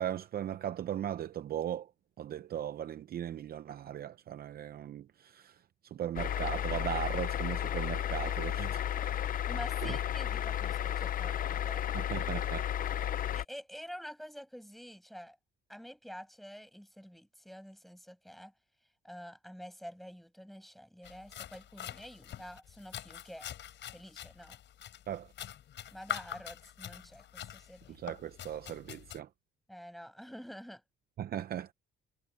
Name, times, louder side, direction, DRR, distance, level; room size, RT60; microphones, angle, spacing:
voice 1, 0.0-1.9 2.2-5.6 5.8-8.9 9.8-10.0 11.9-12.7 25.1-25.3 28.0-29.3 31.2-31.7, right 10 dB, 45° right, 0.6 m, -38 dB
sound 1, 6.2-13.4, left 10 dB, 40° left, 0.5 m, -33 dB
voice 2, 9.3-11.8 13.3-15.4 15.7-18.5 19.0-23.5 23.9-24.6 25.9-28.0 29.7-30.8, equal, ahead, 7.5 m, -48 dB
sound 2, 21.0-29.2, left 11 dB, 60° left, 4.8 m, -45 dB
cardioid pair, 155°, 21 cm